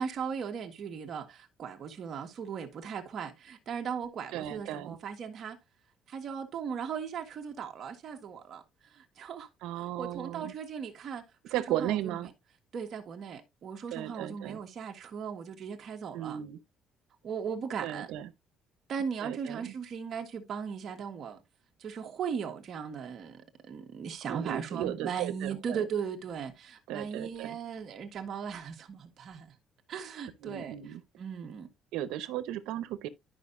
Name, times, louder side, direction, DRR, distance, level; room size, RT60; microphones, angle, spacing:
voice 1, 0.0-5.6 6.1-8.6 9.0-9.5 10.0-12.2 12.7-16.4 17.2-18.1 18.9-21.4 21.8-29.5 29.9-30.7 31.2-31.7, right 7 dB, 45° right, 1.5 m, -38 dB
voice 2, 4.3-5.0 9.6-10.5 11.5-12.3 13.9-14.6 16.1-16.6 17.8-18.3 19.2-19.7 24.3-25.9 26.9-27.6 30.4-31.0 31.9-33.1, right 12 dB, 90° right, 0.9 m, -35 dB
11.5 x 5.6 x 2.6 m
cardioid pair, 150°, 0 cm